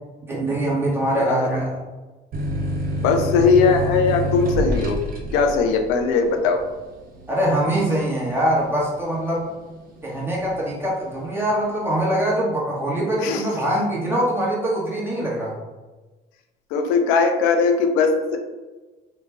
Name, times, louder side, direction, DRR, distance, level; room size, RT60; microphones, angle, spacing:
voice 1, 0.3-1.8 7.3-9.5 10.0-15.5, right 1 dB, 10° right, -5 dB, 1.3 m, -23 dB
voice 2, 1.1-1.5 2.9-5.0 5.3-6.6 13.2-13.5 16.7-18.4, left 5 dB, 85° left, 5 dB, 0.5 m, -19 dB
sound 1, 2.3-9.6 10.0-10.7, equal, 45° right, 0.7 m, -27 dB
3.2 x 2.3 x 3.3 m, 1.2 s
supercardioid pair, 80°, 21 cm